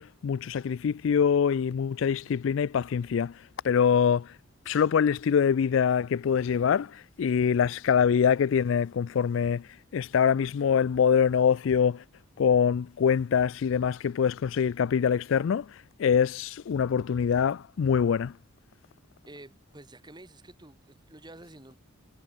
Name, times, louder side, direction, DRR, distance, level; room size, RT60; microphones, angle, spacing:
voice 1, 0.0-4.4 4.7-12.0 12.4-18.4, left 7 dB, 65° left, 0.3 m, -24 dB
voice 2, 19.2-21.8, right 2 dB, 20° right, 1.7 m, -49 dB
head